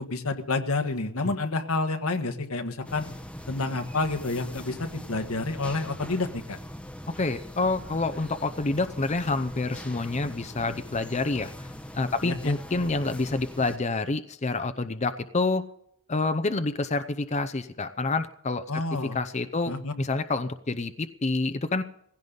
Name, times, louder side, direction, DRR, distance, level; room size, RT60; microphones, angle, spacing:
voice 1, 0.0-3.1 3.5-6.6 12.2-12.5 18.7-19.2 19.7-19.9, left 3 dB, 85° left, 6 dB, 1.6 m, -29 dB
sound 1, 2.8-13.8, equal, 5° left, 0.9 m, -41 dB
voice 2, 7.2-11.5 11.9-15.6 16.1-18.8 19.1-21.8, left 3 dB, 35° left, 10 dB, 0.7 m, -28 dB
18.5 x 16.0 x 4.0 m, 0.71 s
head